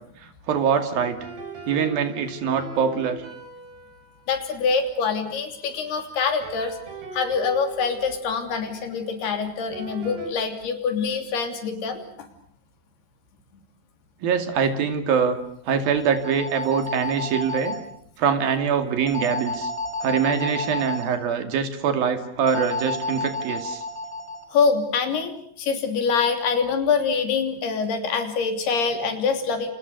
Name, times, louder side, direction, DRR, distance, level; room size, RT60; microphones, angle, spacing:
voice 1, 0.5-1.2 1.7-3.2 14.2-15.4 15.7-17.8 18.2-19.7 20.0-23.8, right 6 dB, 70° right, 7 dB, 4.2 m, -23 dB
sound 1, 0.9-5.7 6.4-10.3, right 4 dB, 85° right, 7.3 m, -41 dB
voice 2, 4.3-6.8 7.1-12.3 24.5-29.7, left 5 dB, 85° left, 6 dB, 5.2 m, -25 dB
sound 2, 15.8-17.8 19.1-21.1 22.5-24.4, left 2 dB, 5° left, 4.6 m, -31 dB
28.5 x 28.0 x 6.7 m, 0.65 s
omnidirectional pair, 4.5 m